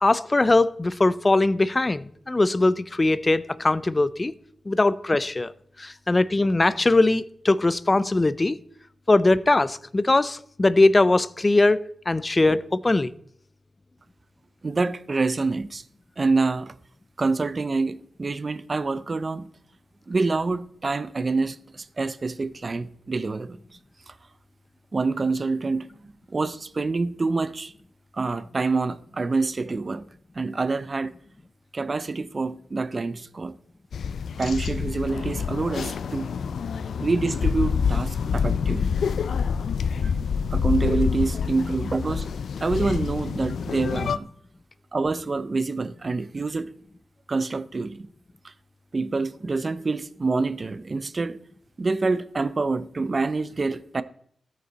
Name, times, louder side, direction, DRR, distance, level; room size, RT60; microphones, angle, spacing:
voice 1, 0.0-4.3 4.7-5.5 5.8-8.6 9.1-11.8 12.1-13.1, left 2 dB, 20° left, 0.4 m, -21 dB
voice 2, 14.6-15.8 16.2-16.7 17.2-19.5 20.1-23.6 24.1-24.2 24.9-27.7 28.1-30.1 30.3-31.2 31.7-33.6 34.4-36.3 37.0-39.0 40.0-40.1 40.5-42.3 42.6-44.3 44.9-46.7 47.3-48.1 48.4-48.5 48.9-51.4 51.8-54.0, right 3 dB, 30° right, 0.5 m, -26 dB
sound 1, 33.9-44.2, left 6 dB, 85° left, 0.4 m, -27 dB
13.0 x 9.1 x 4.0 m
wide cardioid pair, 160°, 0 cm